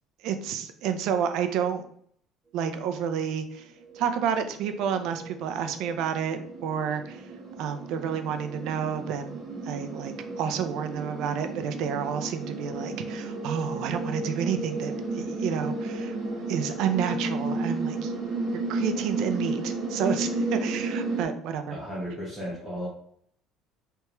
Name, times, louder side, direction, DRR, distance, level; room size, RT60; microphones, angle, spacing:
voice 1, 0.2-1.9 2.5-3.7 3.9-7.3 7.6-16.2 16.5-18.1 18.7-21.7, right 7 dB, 70° right, 8 dB, 0.6 m, -30 dB
sound 1, 3.4-21.2, right 2 dB, 45° right, 1.3 m, -33 dB
voice 2, 21.7-22.9, equal, ahead, -9 dB, 1.5 m, -34 dB
4.5 x 3.4 x 3.0 m, 0.62 s
cardioid pair, 135°, 0 cm